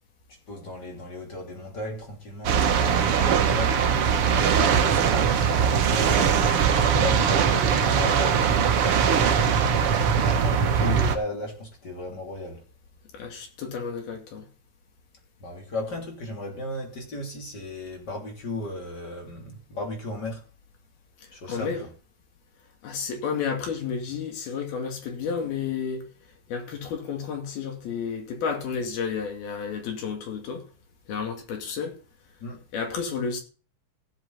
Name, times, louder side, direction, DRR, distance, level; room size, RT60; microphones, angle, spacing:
voice 1, 0.5-2.7 3.0-3.8 4.4-6.2 6.7-8.7 10.1-12.6 15.4-20.4 21.3-21.9 32.4-32.6, left 2 dB, 30° left, 3.1 m, -35 dB
sound 1, 2.4-11.2, right 7 dB, 75° right, 1.3 m, -21 dB
voice 2, 13.1-14.5 21.5-21.8 22.8-26.1 26.5-30.6 31.1-32.0 32.7-33.4, left 6 dB, 80° left, 4.3 m, -31 dB
17.0 x 7.9 x 4.0 m
omnidirectional pair, 4.3 m